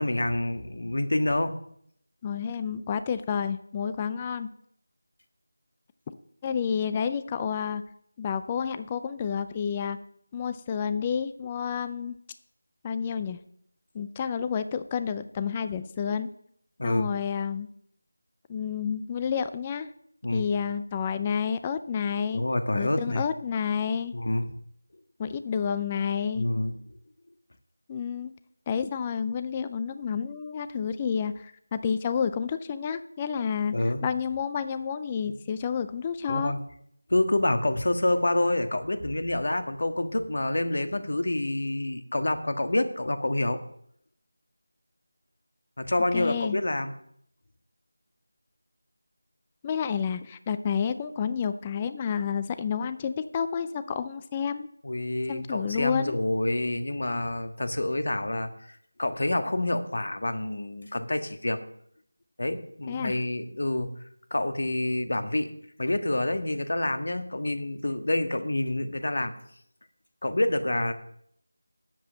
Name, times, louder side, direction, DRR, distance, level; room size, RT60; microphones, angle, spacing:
voice 1, 0.0-1.5 16.8-17.1 20.2-20.4 22.3-23.2 24.1-24.4 26.3-26.7 33.7-34.0 35.2-35.3 36.3-36.6 37.1-43.6 45.8-46.9 54.8-58.5 59.0-61.6 62.4-63.9 64.3-65.5 65.8-69.3 70.2-70.9, left 1 dB, 60° left, 8 dB, 1.6 m, -27 dB
voice 2, 2.2-4.5 6.4-7.8 8.2-10.0 10.3-12.2 12.8-13.4 13.9-16.3 16.8-17.7 18.5-19.9 20.3-22.4 22.7-24.1 25.2-26.5 27.9-28.3 28.7-36.5 46.1-46.6 49.6-54.7 55.3-56.2 62.9-63.2, left 7 dB, 15° left, 11 dB, 0.4 m, -30 dB
9.9 x 7.6 x 7.5 m, 0.69 s
figure-of-eight pair, 170°, 0 cm